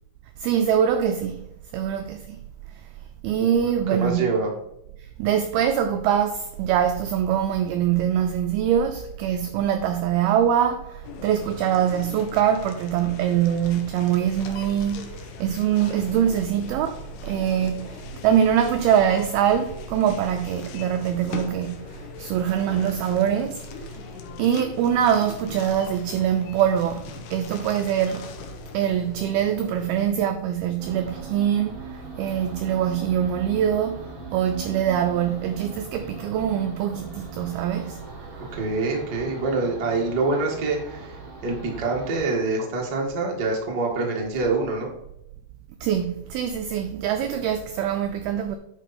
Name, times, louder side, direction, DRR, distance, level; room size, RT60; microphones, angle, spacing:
voice 1, 0.4-1.4 1.7-2.4 3.2-4.4 5.2-15.1 15.4-21.9 22.2-23.6 24.4-28.3 28.7-31.8 32.2-34.0 34.3-38.0 45.8-48.6, right 9 dB, 90° right, 2.1 m, -23 dB
voice 2, 3.9-4.5 38.5-41.1 41.4-44.9, right 3 dB, 60° right, 1.0 m, -25 dB
sound 1, 11.0-30.1, left 6 dB, 75° left, 2.8 m, -40 dB
sound 2, 30.8-42.2, right 2 dB, 45° right, 2.4 m, -40 dB
10.0 x 4.6 x 4.1 m
omnidirectional pair, 5.0 m